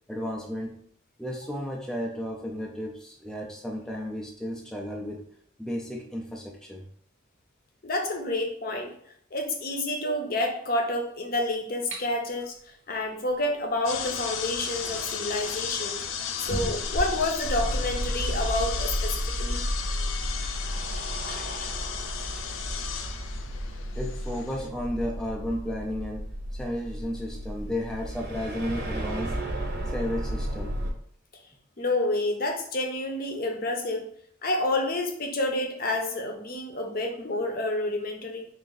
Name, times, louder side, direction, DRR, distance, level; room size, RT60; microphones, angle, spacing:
voice 1, 0.1-0.8 1.2-5.2 5.6-6.9 10.0-10.2 24.0-26.3 26.5-29.4 29.9-30.8, equal, 5° left, -1 dB, 0.4 m, -33 dB
voice 2, 7.8-8.9 9.3-12.5 12.9-16.0 16.4-19.6 21.2-21.7 31.8-34.0 34.4-38.4, left 2 dB, 50° left, 3 dB, 0.7 m, -29 dB
sound 1, 11.9-12.1 13.9-14.0 14.6-15.7 16.5-17.8, equal, 80° right, 0.8 m, -34 dB
sound 2, 13.8-24.7, left 7 dB, 85° left, 0.4 m, -35 dB
sound 3, 17.4-30.9, equal, 50° right, 0.8 m, -33 dB
3.7 x 2.6 x 3.9 m, 0.64 s
head